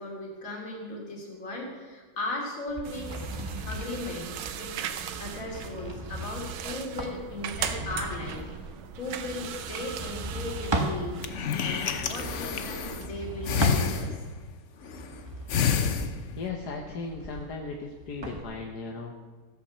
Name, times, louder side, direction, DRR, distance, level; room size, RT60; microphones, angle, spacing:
voice 1, 0.0-3.2 3.7-4.7 5.2-8.4 9.0-11.2 11.6-14.2, left 2 dB, 40° left, -1 dB, 3.1 m, -37 dB
sound 1, 2.7-11.0 11.8-14.3 14.8-18.4, right 1 dB, 15° right, 1.1 m, -37 dB
sound 2, 2.8-13.1, right 8 dB, 70° right, 1.6 m, -39 dB
sound 3, 10.9-13.1 13.4-14.5 14.8-15.2 15.5-16.5, left 6 dB, 80° left, 0.6 m, -29 dB
voice 2, 16.4-19.3, left 4 dB, 55° left, 2 dB, 1.5 m, -37 dB
15.0 x 8.8 x 6.8 m, 1.3 s
omnidirectional pair, 2.4 m